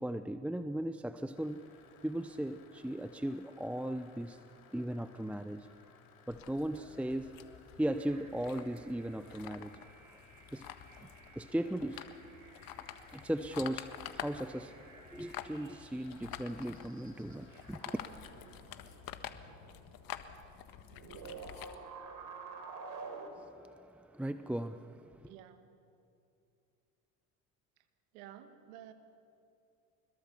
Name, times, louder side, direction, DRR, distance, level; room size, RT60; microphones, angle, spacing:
voice 1, 0.0-1.7 2.0-4.4 4.7-5.7 6.3-9.8 10.5-10.7 11.0-12.1 13.1-18.0 23.4-25.3, right 1 dB, 5° right, 11 dB, 0.7 m, -38 dB
sound 1, 1.3-18.6, left 6 dB, 85° left, 4.2 m, -62 dB
sound 2, 6.3-21.8, left 11 dB, 55° left, 1.5 m, -49 dB
sound 3, 8.0-23.3, right 4 dB, 55° right, 4.0 m, -52 dB
voice 2, 25.3-25.7 28.1-28.9, right 11 dB, 80° right, 9 dB, 1.8 m, -51 dB
25.0 x 21.5 x 7.1 m, 2.6 s
hypercardioid pair, 70°, 41 cm